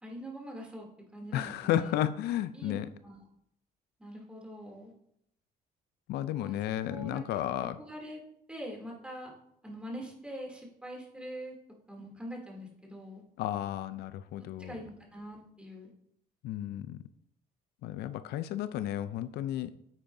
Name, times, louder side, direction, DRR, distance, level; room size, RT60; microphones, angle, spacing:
voice 1, 0.0-0.8 1.1-2.0 2.5-2.8 3.0-3.2 4.0-4.9 6.4-6.6 6.8-7.2 7.5-8.2 8.5-9.3 9.6-11.5 11.9-13.2 14.6-15.9, equal, 5° right, -1 dB, 2.7 m, -43 dB
voice 2, 1.3-2.9 6.1-7.8 13.4-14.8 16.4-17.0 17.8-19.7, left 12 dB, 75° left, 13 dB, 0.4 m, -33 dB
9.8 x 8.6 x 2.7 m, 0.74 s
cardioid pair, 110°, 17 cm